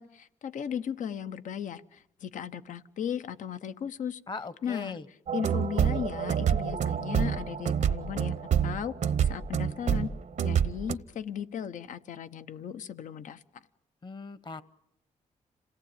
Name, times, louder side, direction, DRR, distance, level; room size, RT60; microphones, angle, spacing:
voice 1, 0.0-4.2 4.6-5.0 5.3-10.1 10.4-13.4, left 8 dB, 85° left, 12 dB, 0.9 m, -36 dB
voice 2, 4.3-5.1 14.0-14.6, left 4 dB, 35° left, 16 dB, 1.0 m, -39 dB
sound 1, 5.3-11.0, right 8 dB, 75° right, 0.9 m, -27 dB
27.5 x 17.5 x 9.0 m, 0.81 s
wide cardioid pair, 115°, 13 cm